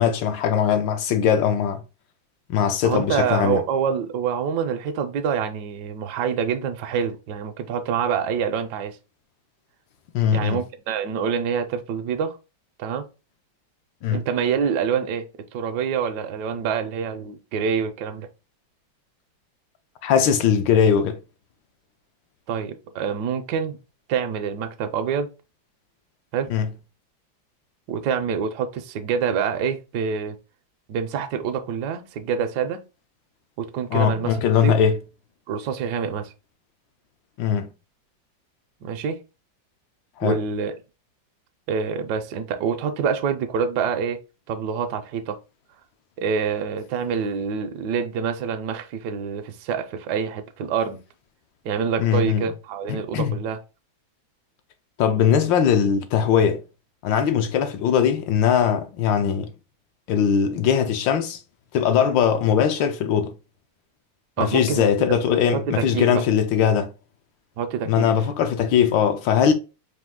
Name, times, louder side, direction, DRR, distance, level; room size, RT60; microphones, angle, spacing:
voice 1, 0.0-1.8 2.5-3.6 10.1-10.6 14.0-14.2 20.0-21.2 26.5-26.7 33.9-35.0 37.4-37.7 40.2-40.4 52.0-52.5 52.9-53.4 55.0-56.6 57.0-59.5 60.1-61.4 61.7-63.3 64.4-66.9 67.9-69.5, left 8 dB, 75° left, 1.4 m, -20 dB
voice 2, 2.8-9.0 10.3-12.4 12.8-13.0 14.1-15.3 15.5-18.3 22.5-23.8 24.1-25.3 26.3-26.5 27.9-30.4 30.9-32.8 33.6-34.7 35.5-36.3 38.8-39.2 40.2-40.7 41.7-44.2 44.5-45.4 46.2-51.0 51.6-53.6 64.4-64.9 65.5-66.2 67.6-68.1, right 7 dB, 75° right, 1.0 m, -26 dB
4.3 x 2.6 x 3.6 m
omnidirectional pair, 2.1 m